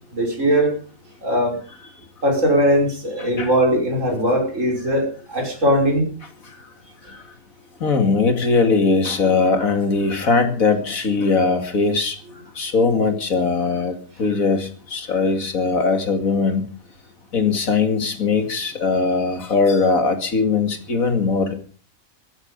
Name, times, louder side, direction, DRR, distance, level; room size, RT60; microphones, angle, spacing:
voice 1, 0.1-0.7 1.2-1.6 1.8-1.9 2.2-6.1, equal, 60° right, 5.7 m, -20 dB
voice 2, 3.2-3.5 7.8-12.2 12.6-16.6 17.3-21.5, left 4 dB, 75° left, 2.8 m, -20 dB
16.5 x 15.0 x 5.4 m
omnidirectional pair, 1.5 m